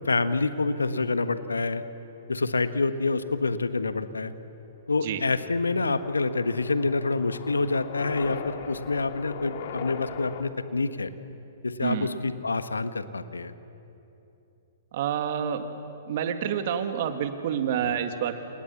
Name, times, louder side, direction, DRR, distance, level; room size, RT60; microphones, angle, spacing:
voice 1, 0.0-1.8 2.3-4.3 4.9-11.1 11.6-13.5 17.8-17.9, left 3 dB, 85° left, 11 dB, 1.5 m, -27 dB
sound 1, 5.4-10.4, left 6 dB, 55° left, 2.7 m, -39 dB
voice 2, 11.8-12.1 14.9-15.6 16.0-18.4, right 9 dB, 50° right, 7 dB, 2.3 m, -28 dB
29.0 x 28.0 x 7.3 m, 2.9 s
figure-of-eight pair, 115°, 0 cm